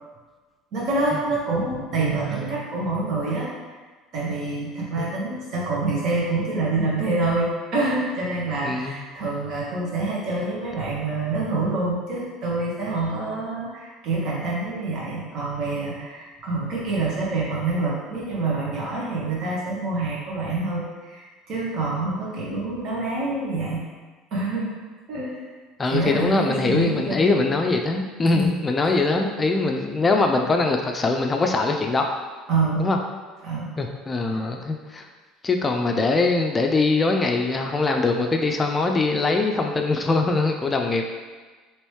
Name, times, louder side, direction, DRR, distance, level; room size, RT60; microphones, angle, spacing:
voice 1, 0.7-3.5 4.1-23.8 24.3-24.7 25.1-25.4 25.9-27.3 28.3-28.5 32.5-32.9 33.4-33.7, right 3 dB, 55° right, -5 dB, 1.2 m, -26 dB
voice 2, 8.6-9.0 25.8-32.1 32.8-33.0 33.8-35.1 35.4-41.1, left 3 dB, 25° left, 3 dB, 0.4 m, -22 dB
3.1 x 3.0 x 3.1 m, 1.4 s
hypercardioid pair, 75°, 0 cm